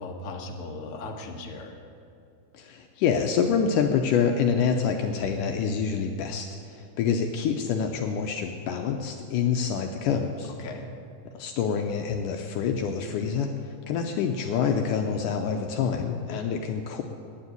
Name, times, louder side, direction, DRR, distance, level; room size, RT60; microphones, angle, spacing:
voice 1, 0.0-1.8 10.4-10.9, left 2 dB, 55° left, 0 dB, 1.8 m, -37 dB
voice 2, 2.5-10.5 11.3-13.5 13.9-17.0, left 6 dB, 75° left, 4 dB, 2.1 m, -26 dB
10.0 x 9.6 x 9.3 m, 2.4 s
omnidirectional pair, 3.9 m